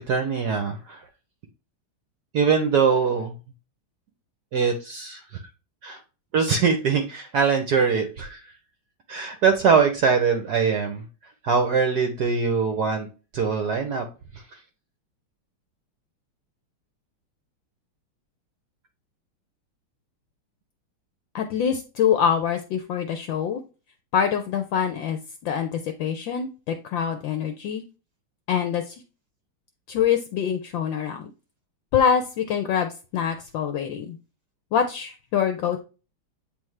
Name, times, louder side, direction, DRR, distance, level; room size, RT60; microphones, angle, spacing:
voice 1, 0.1-1.0 2.3-3.3 4.5-5.4 5.8-6.0 6.3-8.5 9.1-11.0 11.4-13.1 13.3-14.1 14.3-14.6, right 5 dB, 65° right, 5 dB, 1.1 m, -22 dB
voice 2, 21.3-23.6 24.1-27.8 28.5-29.0 29.9-31.3 31.9-34.2 34.7-35.8, left 8 dB, 70° left, 7 dB, 1.2 m, -25 dB
8.4 x 3.5 x 3.2 m, 0.32 s
omnidirectional pair, 2.4 m